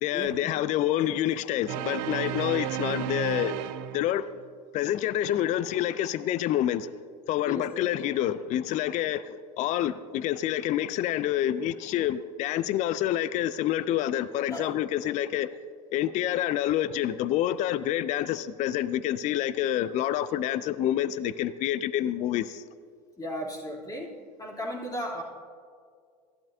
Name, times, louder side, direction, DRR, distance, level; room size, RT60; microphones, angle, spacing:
voice 1, 0.0-3.6 3.9-4.3 4.7-6.9 7.3-15.5 15.9-22.6, left 12 dB, 35° left, 0.4 m, -27 dB
sound 1, 1.7-4.4, right 13 dB, 55° right, 0.6 m, -33 dB
voice 2, 23.2-24.1 24.4-25.2, equal, 20° left, 3.0 m, -35 dB
16.0 x 11.5 x 2.7 m
hypercardioid pair, 85°, 21 cm